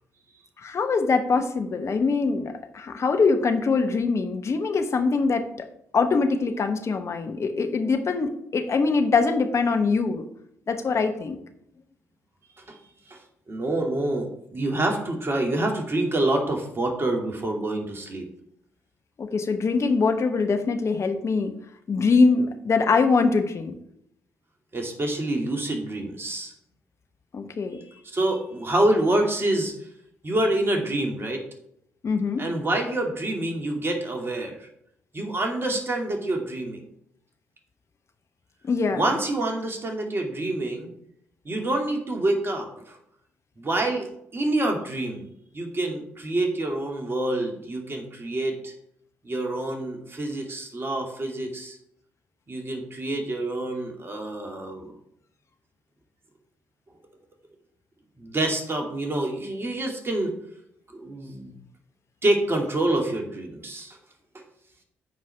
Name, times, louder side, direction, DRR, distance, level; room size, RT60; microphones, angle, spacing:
voice 1, 0.6-5.7 5.9-10.3 10.7-11.4 19.2-21.5 21.9-23.7 27.3-27.8 32.0-32.5 38.7-39.1, left 4 dB, 45° left, 6 dB, 1.2 m, -23 dB
voice 2, 13.5-18.2 24.7-26.5 28.1-29.7 30.2-31.4 32.4-34.7 35.1-36.8 38.9-40.9 41.4-43.0 43.6-44.1 44.3-45.3 45.5-48.7 49.2-51.8 52.5-54.9 58.2-60.3 60.9-61.5 62.2-64.0 64.3-64.4, right 1 dB, 35° right, 2 dB, 2.5 m, -27 dB
14.0 x 4.8 x 3.5 m, 0.74 s
figure-of-eight pair, 45°, 7 cm